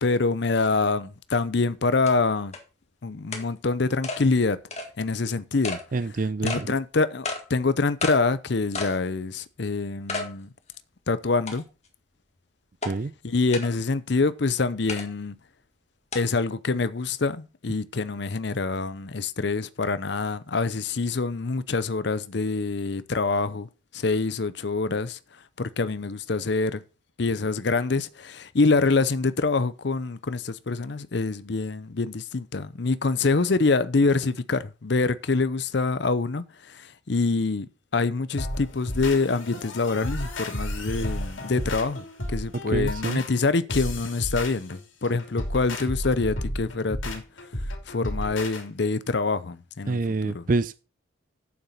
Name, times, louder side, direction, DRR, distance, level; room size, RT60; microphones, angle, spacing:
voice 1, 0.0-2.5 3.0-4.6 5.0-5.8 6.1-10.5 11.1-11.6 13.2-15.4 16.1-23.7 23.9-25.2 25.6-26.8 27.2-37.7 37.9-42.0 42.3-47.2 47.9-50.5, left 3 dB, 55° left, 0.6 m, -25 dB
sound 1, 1.3-1.4 2.1-2.2 2.5-2.6 3.3-3.5 4.0-4.2 4.7-4.9 5.6-5.8 6.5-6.6 7.2-7.4 8.0-8.2 8.7-9.0 9.4-9.5 10.1-10.3 10.7-10.8 11.5-11.9 12.8-12.9 13.5-13.7 14.9-15.1 16.1-16.2, left 3 dB, 35° left, 1.8 m, -31 dB
voice 2, 5.9-6.7 12.9-13.1 42.7-43.2 49.9-50.8, right 3 dB, 40° right, 0.4 m, -26 dB
sound 2, 38.4-48.6, left 1 dB, 75° left, 2.9 m, -32 dB
8.7 x 7.2 x 5.5 m
head